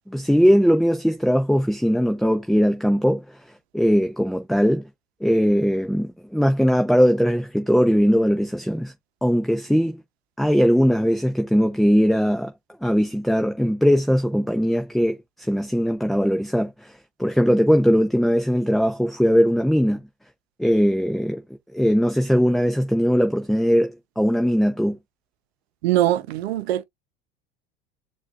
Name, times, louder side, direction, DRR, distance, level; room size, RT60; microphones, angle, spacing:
voice 1, 0.1-3.2 3.7-4.8 5.2-8.9 9.2-10.0 10.4-12.5 12.8-15.2 15.5-16.9 17.2-20.0 20.6-21.4 21.7-25.0, equal, ahead, 0.6 m, -20 dB
voice 2, 25.8-26.8, right 13 dB, 80° right, 0.8 m, -22 dB
7.2 x 2.6 x 2.5 m
hypercardioid pair, 85°, 31 cm